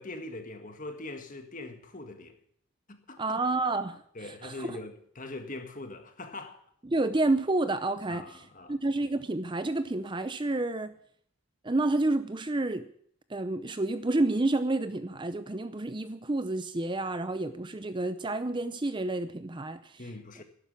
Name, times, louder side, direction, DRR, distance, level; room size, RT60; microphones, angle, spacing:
voice 1, 0.0-2.4 2.9-3.2 4.1-6.6 8.1-8.8 20.0-20.4, left 2 dB, 40° left, 1.8 m, -42 dB
voice 2, 3.2-4.8 6.9-8.2 8.7-11.0 11.6-12.9 13.3-20.0, right 2 dB, 20° right, 0.6 m, -29 dB
12.0 x 11.5 x 8.5 m
head